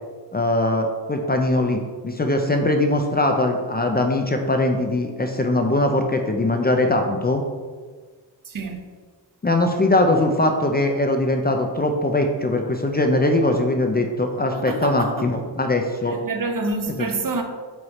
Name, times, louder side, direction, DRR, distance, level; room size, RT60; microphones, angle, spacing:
voice 1, 0.3-7.4 9.4-16.2 17.0-17.1, left 2 dB, 25° left, 0.5 m, -21 dB
voice 2, 8.4-8.8 14.5-15.2 16.0-17.4, right 3 dB, 50° right, 0.8 m, -27 dB
4.9 x 4.6 x 4.2 m
wide cardioid pair, 100°, 42 cm